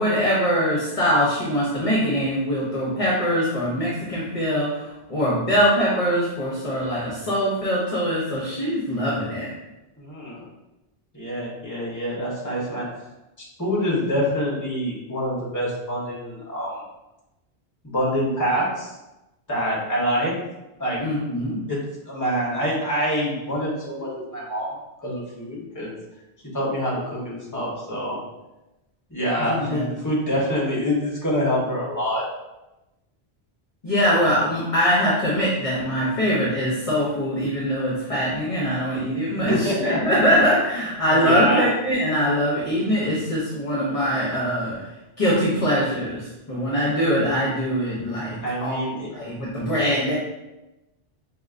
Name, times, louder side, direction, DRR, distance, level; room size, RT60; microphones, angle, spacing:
voice 1, 0.0-9.5 21.0-21.6 29.4-29.9 33.8-44.8 45.2-48.8 49.1-50.1, equal, 35° left, -6 dB, 0.9 m, -23 dB
voice 2, 10.0-10.4 11.1-12.9 13.4-16.8 17.8-18.9 19.5-20.3 20.8-21.0 21.7-21.8 22.1-25.9 26.5-28.2 29.1-32.3 39.4-40.0 41.1-41.7 48.4-49.1, equal, 15° left, -5 dB, 1.1 m, -26 dB
5.1 x 2.9 x 2.5 m, 0.98 s
omnidirectional pair, 1.1 m